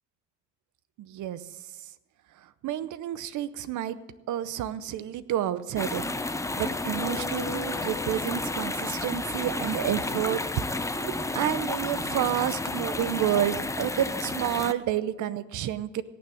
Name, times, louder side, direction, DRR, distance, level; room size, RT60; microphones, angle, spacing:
voice 1, 1.0-1.4 2.6-4.0 4.3-6.0 6.6-10.5 10.8-16.0, right 11 dB, 75° right, 15 dB, 0.8 m, -30 dB
sound 1, 5.8-14.7, left 2 dB, 10° left, 0.6 m, -31 dB
Guitar, 6.8-9.3, left 11 dB, 80° left, 2.3 m, -42 dB
17.5 x 7.1 x 6.3 m, 1.1 s
cardioid pair, 90°, 30 cm